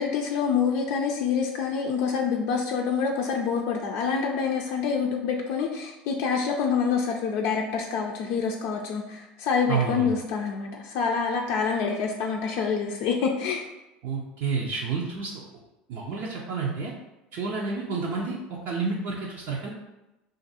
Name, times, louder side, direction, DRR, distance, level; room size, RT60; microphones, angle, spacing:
voice 1, 0.0-13.7, left 6 dB, 60° left, 0 dB, 0.4 m, -26 dB
voice 2, 9.7-10.1 14.0-15.4 15.9-16.9 17.3-18.4 18.7-19.7, right 5 dB, 65° right, -4 dB, 0.6 m, -29 dB
2.5 x 2.5 x 4.1 m, 0.95 s
hypercardioid pair, 80°, 4 cm